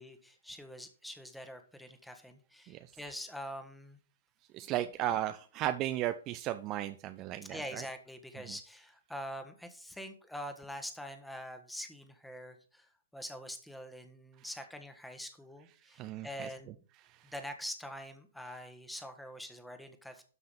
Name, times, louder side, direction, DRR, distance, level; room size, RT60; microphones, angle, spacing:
voice 1, 0.0-4.0 7.4-12.9 13.1-16.8 17.3-20.2, equal, ahead, 7 dB, 1.5 m, -45 dB
voice 2, 4.5-7.8 15.9-16.5, right 13 dB, 30° right, 10 dB, 0.6 m, -35 dB
12.5 x 5.6 x 5.2 m, 0.41 s
figure-of-eight pair, 115°, 0 cm